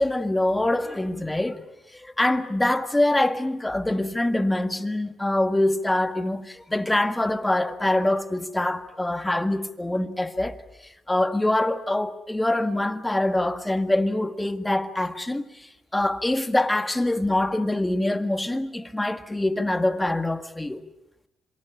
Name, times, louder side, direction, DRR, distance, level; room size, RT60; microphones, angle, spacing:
voice 1, 0.0-1.6 1.9-10.6 11.1-20.8, left 1 dB, 10° left, 1.8 m, -24 dB
26.5 x 24.0 x 8.5 m
cardioid pair, 90°, 0 cm